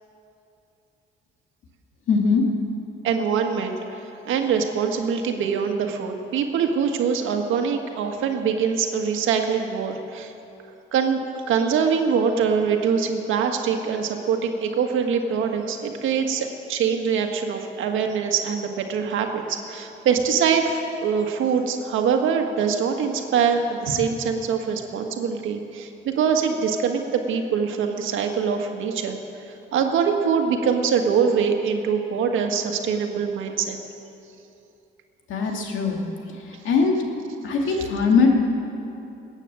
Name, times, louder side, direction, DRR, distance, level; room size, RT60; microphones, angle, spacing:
voice 1, 2.1-2.4 35.3-36.0 36.5-36.9 37.4-38.3, left 5 dB, 80° left, 1 dB, 2.4 m, -21 dB
voice 2, 3.0-10.3 10.9-11.2 11.5-29.2 29.7-33.8, right 6 dB, 80° right, 4 dB, 1.6 m, -23 dB
20.0 x 9.0 x 7.6 m, 2.8 s
cardioid pair, 90°, 20 cm